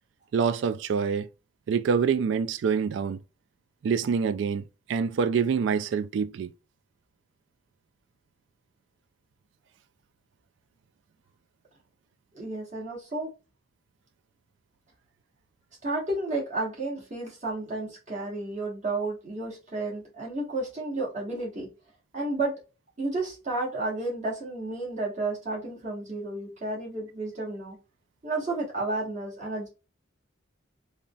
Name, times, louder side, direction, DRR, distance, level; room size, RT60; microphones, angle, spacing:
voice 1, 0.3-1.3 1.7-3.2 3.8-6.5, right 6 dB, 70° right, 0.3 m, -26 dB
voice 2, 12.3-13.3 15.8-21.7 22.1-22.5 23.0-27.8 28.2-29.7, right 2 dB, 40° right, 1.4 m, -32 dB
3.7 x 2.1 x 2.3 m
head